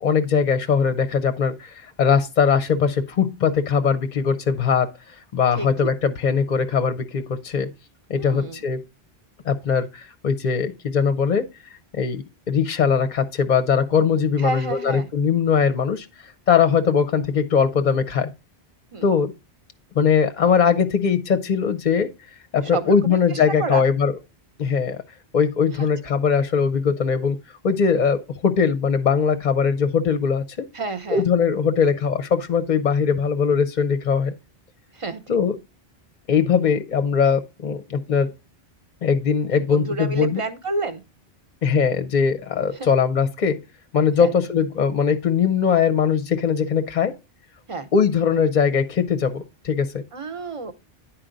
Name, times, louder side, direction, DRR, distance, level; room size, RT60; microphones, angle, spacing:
voice 1, 0.0-4.9 5.3-7.7 8.1-8.8 9.5-11.5 12.0-16.1 16.5-18.3 19.0-19.3 19.9-22.1 22.5-24.1 24.6-25.0 25.3-27.4 27.6-30.7 31.1-34.3 35.3-35.6 36.3-38.3 39.0-40.4 41.6-43.6 43.9-47.1 47.9-50.0, left 6 dB, 50° left, 0.7 m, -20 dB
voice 2, 5.6-5.9 8.1-8.6 14.4-15.1 16.7-16.8 18.9-19.1 22.6-23.8 25.7-25.9 30.7-31.3 34.9-35.2 39.5-41.0 42.7-42.9 44.2-44.3 47.7-47.9 50.1-50.7, right 3 dB, 35° right, 0.8 m, -30 dB
10.0 x 4.5 x 3.8 m
omnidirectional pair, 1.1 m